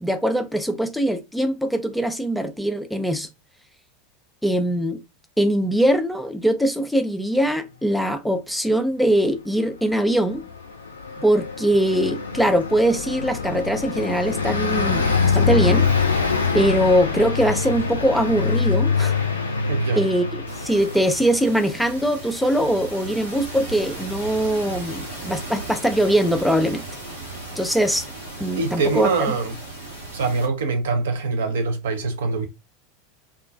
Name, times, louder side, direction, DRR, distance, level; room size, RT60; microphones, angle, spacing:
voice 1, 0.0-3.3 4.4-5.0 5.4-10.5 11.2-15.9 16.5-19.2 20.0-26.8 27.6-28.1 28.4-29.3, right 1 dB, ahead, 0.3 m, -22 dB
Car passing by, 10.3-21.3, left 5 dB, 80° left, 0.4 m, -24 dB
voice 2, 19.7-20.0 28.6-29.6 30.1-32.5, right 4 dB, 65° right, 0.5 m, -24 dB
sound 1, 20.5-30.5, right 2 dB, 90° right, 1.0 m, -36 dB
2.3 x 2.2 x 2.4 m
figure-of-eight pair, 80°, 0 cm